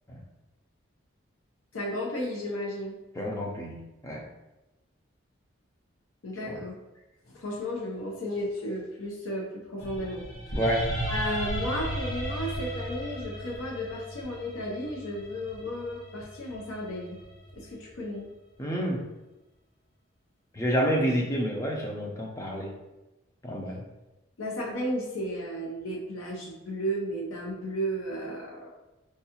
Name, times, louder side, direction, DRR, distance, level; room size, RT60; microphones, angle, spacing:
voice 1, 1.7-3.0 6.2-6.7 7.3-10.6 11.1-17.2 17.5-18.3 24.4-28.7, equal, 90° left, -2 dB, 0.7 m, -34 dB
voice 2, 3.1-3.8 4.0-4.2 6.4-6.6 10.6-10.9 18.6-19.0 20.5-22.7 23.4-23.8, equal, 15° left, -1 dB, 0.5 m, -28 dB
sound 1, 9.8-18.0, right 1 dB, 65° left, 1.1 m, -36 dB
4.6 x 2.3 x 2.8 m, 1.0 s
head